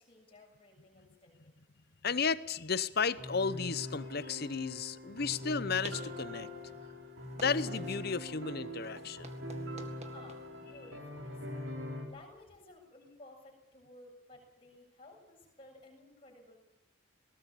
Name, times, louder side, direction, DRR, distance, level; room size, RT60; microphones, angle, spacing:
voice 1, 0.0-1.6 10.1-11.6 12.1-16.6, left 2 dB, 25° left, -2 dB, 7.3 m, -56 dB
voice 2, 2.0-6.5 7.3-9.3, left 5 dB, 50° left, 16 dB, 0.8 m, -33 dB
sound 1, 3.2-12.1, left 1 dB, 75° right, 4.5 m, -42 dB
sound 2, 5.1-12.6, right 3 dB, 35° right, 2.0 m, -55 dB
20.5 x 19.0 x 8.5 m, 0.91 s
head